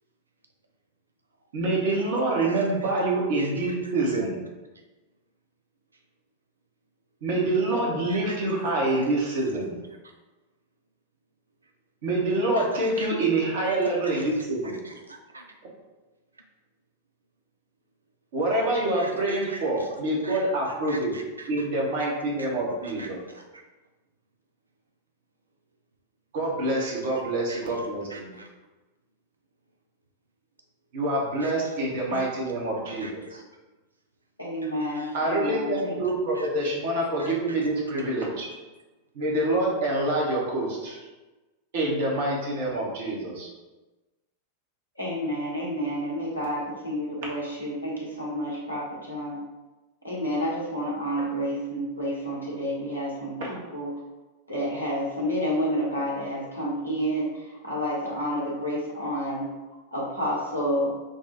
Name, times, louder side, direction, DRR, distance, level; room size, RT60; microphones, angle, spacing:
voice 1, 1.5-4.4 7.2-9.8 12.0-14.8 18.3-21.1 21.5-23.2 26.3-28.3 30.9-33.4 35.1-38.5 39.1-41.0 41.7-43.5 53.4-53.5, right 2 dB, 55° right, -3 dB, 1.2 m, -26 dB
voice 2, 2.4-2.9 3.4-4.2 8.1-8.4 12.6-13.1 13.6-13.7 14.0-14.3 14.6-15.4 19.0-19.9 20.2-21.7 22.0-22.1 22.8-23.6 26.8-26.9 27.5-27.8 28.1-28.5 31.4-31.7 32.1-32.2 32.8-33.4 34.6-35.2 36.3-36.7 37.2-37.6 38.0-38.1, right 2 dB, 80° right, 2 dB, 0.4 m, -45 dB
voice 3, 34.4-36.0 45.0-49.4 50.0-53.9 54.5-57.3 57.6-59.5 59.9-60.9, equal, 85° left, -5 dB, 1.3 m, -29 dB
5.9 x 2.4 x 2.9 m, 1.1 s
figure-of-eight pair, 90°, 0 cm